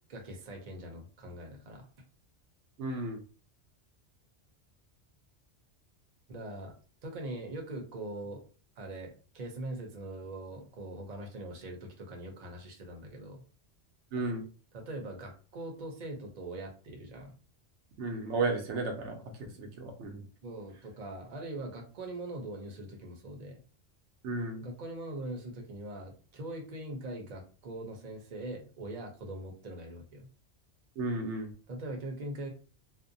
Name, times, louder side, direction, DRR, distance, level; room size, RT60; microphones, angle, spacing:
voice 1, 0.1-1.9 6.3-6.7 7.0-8.4 8.8-13.4 14.7-17.3 20.4-23.6 24.6-30.3 31.7-32.5, right 1 dB, 45° right, 2 dB, 0.7 m, -42 dB
voice 2, 2.8-3.2 14.1-14.4 18.0-19.2 19.6-20.3 24.2-24.6 31.0-31.5, right 3 dB, 85° right, 3 dB, 0.9 m, -33 dB
2.5 x 2.1 x 2.6 m, 0.39 s
omnidirectional pair, 1.1 m